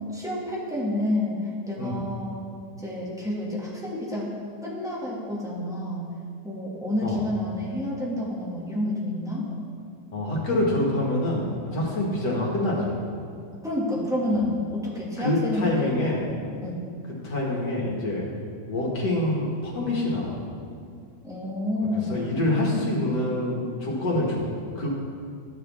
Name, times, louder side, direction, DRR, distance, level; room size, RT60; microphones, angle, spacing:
voice 1, 0.1-2.4 2.8-4.3 4.6-6.1 6.4-9.5 11.7-11.9 13.6-15.9 16.6-16.8 21.2-22.1, left 1 dB, ahead, -6 dB, 1.7 m, -29 dB
voice 2, 10.1-12.9 14.3-14.4 15.2-16.2 17.2-18.2 18.7-20.4 21.8-24.5 24.8-24.9, left 1 dB, 65° left, -3 dB, 2.4 m, -26 dB
14.0 x 6.8 x 3.5 m, 2.2 s
omnidirectional pair, 1.9 m